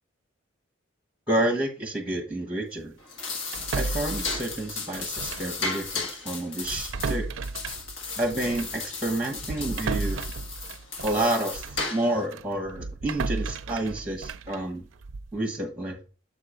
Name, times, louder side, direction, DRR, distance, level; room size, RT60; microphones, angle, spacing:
voice 1, 1.3-2.9 3.7-7.2 8.2-10.2 11.0-14.9 15.3-16.0, right 1 dB, 5° right, 4 dB, 1.2 m, -29 dB
sound 1, 3.0-12.3, left 4 dB, 65° left, 1.5 m, -35 dB
sound 2, 3.5-5.6 5.8-6.0 6.6-11.9 12.3-15.4, right 4 dB, 65° right, 0.4 m, -34 dB
7.1 x 3.8 x 5.0 m, 0.35 s
head